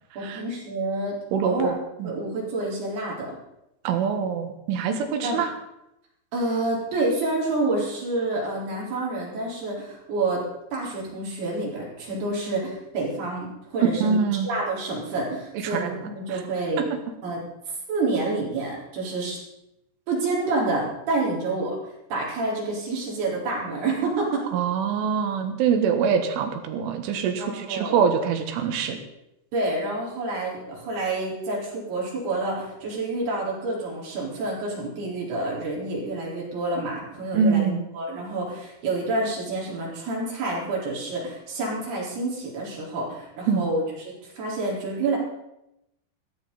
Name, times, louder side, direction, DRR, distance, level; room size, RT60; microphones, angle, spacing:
voice 1, 0.2-1.2 1.4-1.7 2.0-3.4 5.2-5.5 6.3-10.4 10.7-14.2 14.4-16.9 17.2-19.4 20.1-21.8 22.1-24.5 27.4-28.1 29.5-45.2, right 2 dB, 55° right, -4 dB, 6.0 m, -28 dB
voice 2, 1.3-2.1 3.9-5.5 14.0-14.5 15.6-16.0 16.3-16.4 24.5-29.0 37.3-37.8 43.5-43.7, right 6 dB, 80° right, 6 dB, 3.8 m, -24 dB
15.5 x 15.0 x 4.1 m, 0.86 s
omnidirectional pair, 5.6 m